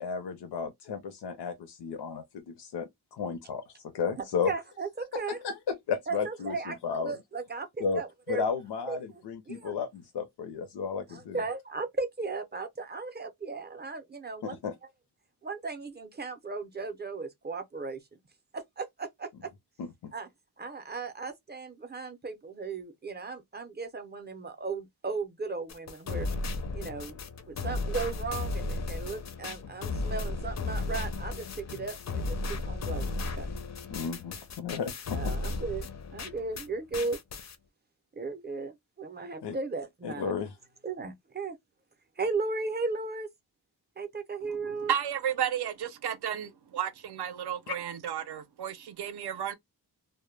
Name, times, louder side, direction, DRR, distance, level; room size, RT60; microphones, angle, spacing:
voice 1, 0.0-4.5 5.4-7.1 7.8-8.0 8.3-11.4 14.4-14.7 19.8-20.1 33.9-35.3 39.4-39.6 40.0-40.5 47.7-47.8, left 6 dB, 90° left, 0.6 m, -33 dB
voice 2, 4.2-5.4 6.1-8.4 8.9-9.2 9.5-9.7 11.1-14.6 15.4-18.2 18.5-19.5 20.1-20.3 20.6-26.3 26.7-27.2 27.5-33.5 35.1-37.2 38.2-40.3 40.8-41.6 42.2-43.3 44.0-44.9, right 4 dB, 25° right, 0.4 m, -36 dB
sound 1, 25.7-36.7 36.9-37.5, left 2 dB, 45° left, 0.4 m, -35 dB
voice 3, 44.4-49.5, right 9 dB, 75° right, 0.5 m, -33 dB
2.1 x 2.0 x 3.1 m
wide cardioid pair, 175°, 40 cm